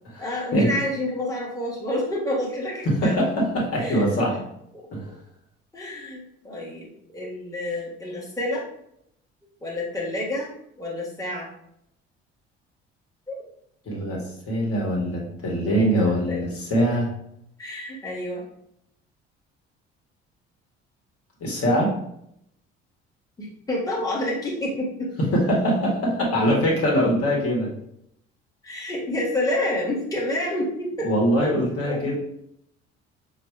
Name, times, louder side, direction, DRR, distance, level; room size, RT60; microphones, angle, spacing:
voice 1, 0.2-3.3 3.8-4.2 5.7-8.6 9.6-10.5 10.8-11.5 13.3-13.4 15.9-16.5 17.6-18.4 23.4-25.1 28.6-31.1 31.9-32.0, left 1 dB, 10° left, -4 dB, 1.4 m, -29 dB
voice 2, 2.9-4.4 4.9-5.0 13.9-17.1 21.4-21.9 25.3-27.7 31.0-32.2, equal, 45° left, -3 dB, 1.6 m, -22 dB
5.8 x 2.4 x 3.2 m, 0.75 s
figure-of-eight pair, 50°, 32 cm